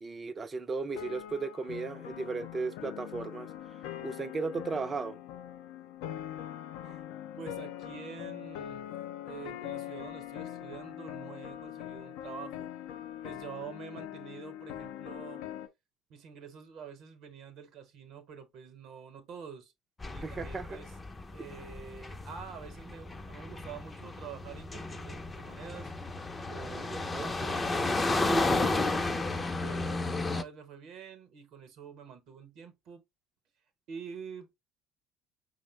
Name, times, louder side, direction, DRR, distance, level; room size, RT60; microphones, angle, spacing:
voice 1, 0.0-3.5 4.0-5.2 20.2-20.8 21.4-21.5 26.7-27.3 28.3-28.4, right 4 dB, 30° right, 0.5 m, -36 dB
sound 1, 0.9-15.7, left 11 dB, 70° left, 0.5 m, -42 dB
voice 2, 7.4-8.9 9.3-12.7 13.2-15.5 16.1-19.7 20.1-20.9 21.3-25.9 26.5-28.9 29.6-33.0 33.9-34.5, right 7 dB, 60° right, 0.9 m, -47 dB
sound 2, 20.0-30.4, left 2 dB, 20° left, 0.5 m, -33 dB
5.3 x 2.1 x 3.1 m
hypercardioid pair, 60°, 0 cm